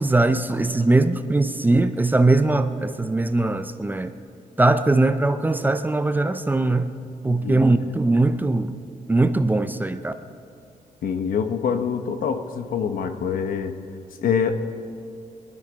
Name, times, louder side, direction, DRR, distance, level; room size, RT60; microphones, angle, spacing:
voice 1, 0.0-4.1 4.6-6.9 7.2-8.8 9.1-10.1, right 2 dB, 15° right, 10 dB, 0.5 m, -20 dB
voice 2, 7.3-7.6 11.0-13.8 14.2-14.5, left 7 dB, 80° left, 8 dB, 1.0 m, -25 dB
22.0 x 11.5 x 5.2 m, 2.5 s
wide cardioid pair, 145°, 14 cm